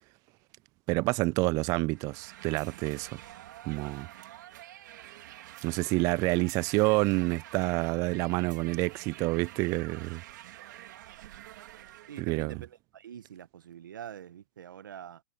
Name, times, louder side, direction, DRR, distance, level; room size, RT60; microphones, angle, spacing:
voice 1, 0.9-3.2 3.7-4.1 5.6-10.2 12.2-12.6, right 24 dB, 35° right, 0.3 m, -28 dB
sound 1, 1.9-12.3, right 13 dB, 70° right, 3.0 m, -48 dB
voice 2, 12.1-15.2, right 9 dB, 85° right, 1.4 m, -45 dB
hypercardioid pair, 135°, 10 cm